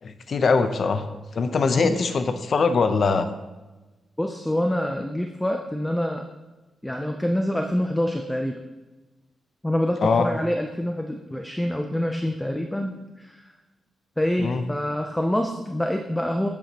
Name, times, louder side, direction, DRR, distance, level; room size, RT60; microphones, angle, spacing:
voice 1, 0.0-1.0 1.4-3.3 10.0-10.3 14.4-14.6, left 4 dB, 45° left, 9 dB, 0.7 m, -22 dB
voice 2, 4.2-6.2 6.8-8.6 9.6-13.5 14.2-16.5, left 1 dB, 5° left, 4 dB, 0.5 m, -26 dB
11.0 x 8.5 x 2.9 m, 1.2 s
wide cardioid pair, 155°, 0 cm